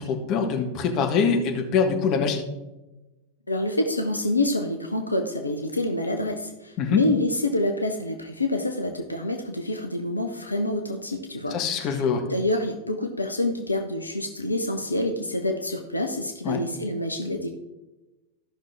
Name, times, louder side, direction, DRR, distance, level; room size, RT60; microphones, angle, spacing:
voice 1, 0.0-2.4 6.8-7.0 11.5-12.2 16.4-16.6, left 6 dB, 40° left, 4 dB, 1.5 m, -24 dB
voice 2, 3.5-12.0 12.3-17.6, left 1 dB, 85° left, 4 dB, 0.8 m, -27 dB
14.5 x 6.0 x 3.5 m, 1.0 s
figure-of-eight pair, 90°, 0 cm